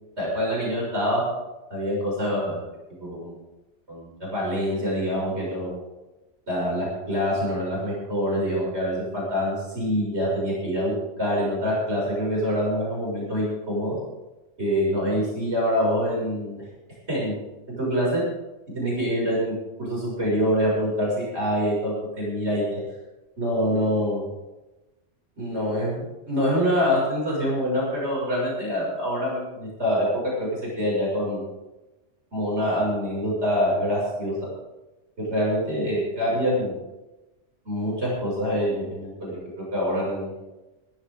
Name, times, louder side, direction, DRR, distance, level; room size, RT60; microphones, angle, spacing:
voice 1, 0.2-1.2 1.7-2.6 2.9-3.4 3.9-5.8 6.5-14.0 14.6-16.6 17.1-17.4 17.7-18.2 18.7-22.8 23.4-24.3 25.4-30.1 30.4-31.4 32.3-34.4 35.2-36.8 37.7-40.4, equal, 65° right, -5 dB, 7.0 m, -25 dB
18.0 x 14.0 x 3.8 m, 1.1 s
omnidirectional pair, 1.2 m